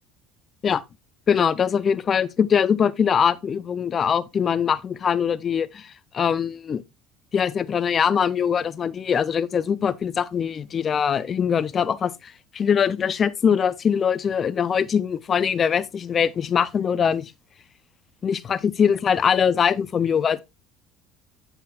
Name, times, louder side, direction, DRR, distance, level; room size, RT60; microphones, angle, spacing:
voice 1, 1.3-5.9 6.1-6.8 7.3-12.1 12.5-17.2 18.2-20.4, left 7 dB, 30° left, 0.4 m, -22 dB
7.5 x 5.5 x 2.3 m
cardioid pair, 130°, 0 cm